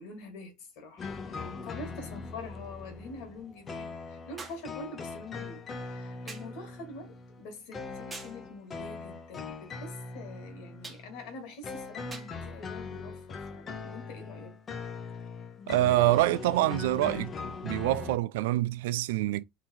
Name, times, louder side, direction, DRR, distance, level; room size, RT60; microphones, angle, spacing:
voice 1, 0.0-14.6, left 2 dB, 70° left, 2.2 m, -45 dB
sound 1, 0.6-0.7 4.4-4.7 6.3-6.6 8.1-8.4 10.8-11.1 12.1-12.4 13.5-13.6, right 3 dB, 15° right, 1.4 m, -44 dB
sound 2, 1.0-18.2, left 4 dB, 30° left, 0.9 m, -41 dB
voice 2, 15.7-17.3 17.6-19.4, right 15 dB, 85° right, 0.3 m, -26 dB
3.9 x 2.9 x 4.4 m
supercardioid pair, 105°, 0 cm